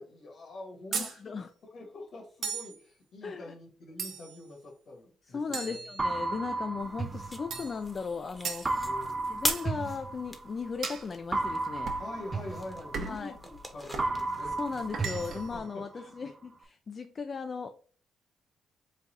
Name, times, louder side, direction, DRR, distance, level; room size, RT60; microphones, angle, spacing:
voice 1, 0.0-1.4 1.7-5.8 7.5-7.7 8.8-9.3 12.0-14.6 15.0-16.1, left 2 dB, 60° left, 1 dB, 1.5 m, -45 dB
voice 2, 0.9-1.5 3.2-3.5 5.3-8.7 9.3-11.9 13.0-13.3 14.6-17.7, left 5 dB, 40° left, 7 dB, 0.3 m, -37 dB
sound 1, 0.9-1.2 2.4-2.8 4.0-4.4 5.5-6.4 7.5-7.8 8.4-8.7 9.5-9.7 10.8-11.1 11.9-12.1 12.9-13.3 13.9-14.1 14.9-15.5, right 5 dB, 65° right, 0.8 m, -37 dB
sound 2, 6.0-8.1 8.6-10.7 11.3-13.6 14.0-16.1, right 3 dB, 30° right, 0.4 m, -34 dB
sound 3, 6.8-15.6, equal, 10° left, 0.9 m, -41 dB
4.1 x 2.3 x 3.8 m, 0.43 s
cardioid pair, 90°, 0 cm